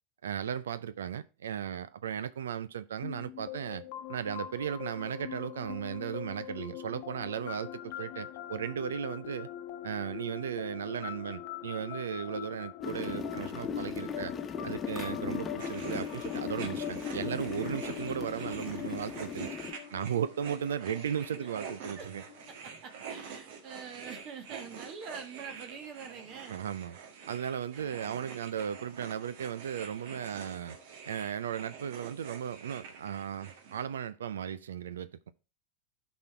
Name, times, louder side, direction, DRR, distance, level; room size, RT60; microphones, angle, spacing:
voice 1, 0.2-3.8 4.1-9.5 9.8-14.3 14.6-19.5 19.9-22.2 26.5-27.0 27.3-30.8 31.1-35.1, right 8 dB, 80° right, 0.5 m, -36 dB
sound 1, 3.0-22.6, left 12 dB, 55° left, 0.9 m, -43 dB
sound 2, 12.8-19.7, left 6 dB, 25° left, 1.1 m, -38 dB
sound 3, 15.6-33.8, right 6 dB, 65° right, 1.6 m, -47 dB
voice 2, 22.5-26.6 27.7-28.0, right 6 dB, 50° right, 1.5 m, -46 dB
12.0 x 4.3 x 4.5 m
hypercardioid pair, 95°, 0 cm